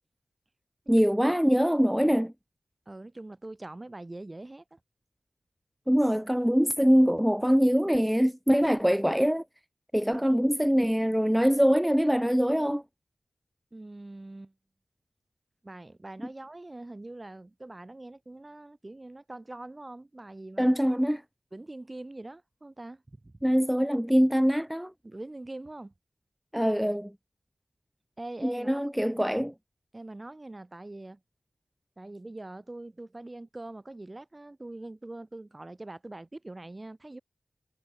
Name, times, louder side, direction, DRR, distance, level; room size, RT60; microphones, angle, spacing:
voice 1, 0.9-2.3 5.9-9.4 9.9-12.8 20.6-21.2 23.4-24.9 26.5-27.1 28.4-29.5, equal, 5° right, 0.7 m, -23 dB
voice 2, 2.9-4.8 13.7-14.5 15.6-20.7 21.5-23.3 25.0-25.9 28.2-28.8 29.9-31.2 32.0-37.2, right 2 dB, 35° right, 1.6 m, -43 dB
cardioid pair, 40°, 0 cm